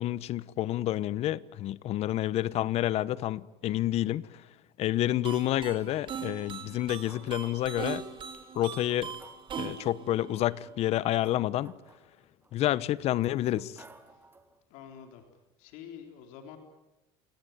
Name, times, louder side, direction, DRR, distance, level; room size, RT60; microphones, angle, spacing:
voice 1, 0.0-4.5 4.8-8.0 8.5-9.2 9.6-11.7 12.5-13.8, left 14 dB, 55° left, 0.9 m, -29 dB
sound 1, 5.2-11.1, right 7 dB, 40° right, 3.6 m, -41 dB
sound 2, 7.1-7.9 8.5-8.6 8.9-9.8 10.7-12.5 13.1-14.6, right 3 dB, 15° right, 3.0 m, -55 dB
voice 2, 14.7-15.2 15.6-16.6, left 8 dB, 75° left, 3.8 m, -47 dB
28.0 x 18.5 x 9.3 m
supercardioid pair, 110°, 13 cm